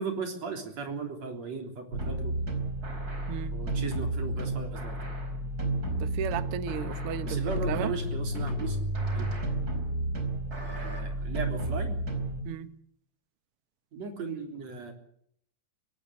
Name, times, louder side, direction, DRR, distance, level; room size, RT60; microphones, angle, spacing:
voice 1, 0.0-2.3 3.5-5.0 7.2-8.8 9.1-9.3 10.6-12.0 13.9-14.9, right 4 dB, 50° right, 4.6 m, -36 dB
sound 1, 1.9-12.4, right 1 dB, 25° right, 4.5 m, -31 dB
voice 2, 6.0-8.0 12.4-12.7, right 9 dB, 80° right, 1.2 m, -35 dB
23.5 x 18.0 x 8.2 m
omnidirectional pair, 4.1 m